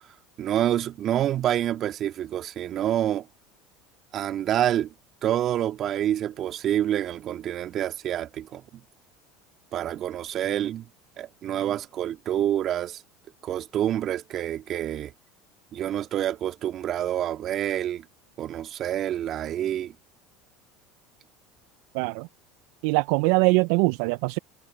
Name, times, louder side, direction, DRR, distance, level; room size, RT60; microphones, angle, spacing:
voice 1, 0.4-3.3 4.1-4.9 5.2-8.6 9.7-10.9 11.2-13.0 13.4-15.1 15.7-18.0 18.4-19.9, right 11 dB, 50° right, 1.9 m, -27 dB
voice 2, 21.9-22.3 22.8-24.4, right 28 dB, 70° right, 0.4 m, -22 dB
supercardioid pair, 95°, 0 cm